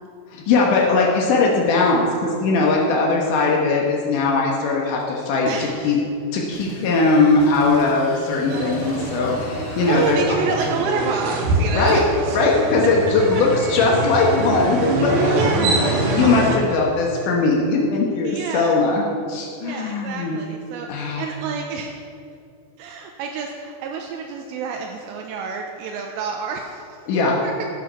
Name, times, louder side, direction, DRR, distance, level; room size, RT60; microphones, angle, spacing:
voice 1, 0.3-6.0 6.3-10.2 11.7-12.0 12.3-15.8 16.1-20.4 20.9-21.2 27.1-27.4, left 3 dB, 90° left, -1 dB, 1.8 m, -20 dB
voice 2, 5.5-6.0 9.9-12.4 15.2-16.0 18.2-18.8 19.6-21.9 22.8-27.0 27.4-27.5, right 5 dB, 85° right, 2 dB, 2.7 m, -28 dB
sound 1, 6.5-10.2, left 1 dB, 65° left, 3.2 m, -36 dB
sound 2, 8.5-16.6, right 2 dB, 65° right, 3.4 m, -24 dB
13.0 x 7.7 x 5.5 m, 2.5 s
omnidirectional pair, 5.4 m